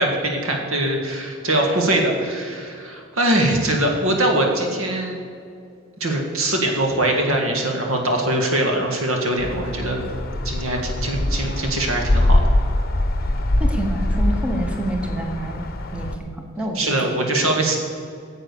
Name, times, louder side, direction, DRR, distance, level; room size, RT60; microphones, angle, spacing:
voice 1, 0.0-5.2 6.0-10.0 10.4-12.4 16.8-17.8, right 1 dB, 90° right, 2 dB, 1.8 m, -22 dB
sound 1, 9.4-16.2, left 1 dB, 50° left, 0.8 m, -22 dB
voice 2, 13.6-15.6 15.9-17.3, right 1 dB, 5° right, 2 dB, 1.1 m, -28 dB
9.5 x 7.6 x 6.8 m, 2.3 s
head